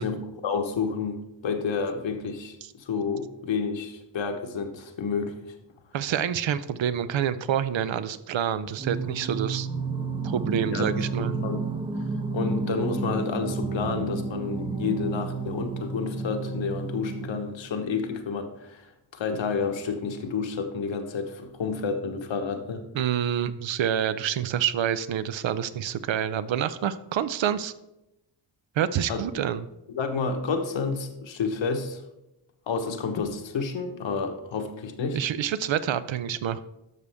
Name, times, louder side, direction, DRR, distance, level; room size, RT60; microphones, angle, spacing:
voice 1, 0.0-5.4 10.7-10.9 11.4-11.6 12.3-18.8 19.1-22.8 29.1-29.2 29.9-32.0 32.7-35.2, left 5 dB, 90° left, 5 dB, 1.3 m, -30 dB
voice 2, 5.9-9.7 10.2-11.4 22.9-27.7 28.8-29.7 35.1-36.6, right 9 dB, 85° right, 14 dB, 0.7 m, -27 dB
Singing, 8.8-17.7, right 3 dB, 15° right, 0.3 m, -31 dB
12.0 x 6.7 x 3.5 m, 0.91 s
wide cardioid pair, 170°, 44 cm